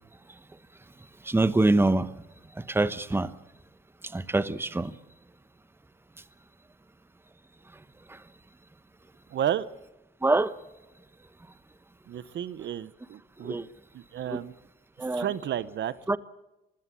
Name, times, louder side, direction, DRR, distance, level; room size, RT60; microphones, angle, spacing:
voice 1, 1.2-2.1 2.6-3.3 4.1-4.9 8.1-8.2 10.2-10.5 13.4-13.7 14.2-14.4 15.0-15.3 16.1-16.2, right 2 dB, 10° right, 1.1 m, -25 dB
voice 2, 9.3-9.7 12.1-13.6 13.9-14.5 15.1-15.9, right 10 dB, 65° right, 0.9 m, -31 dB
26.5 x 16.0 x 7.5 m
cardioid pair, 90°, 20 cm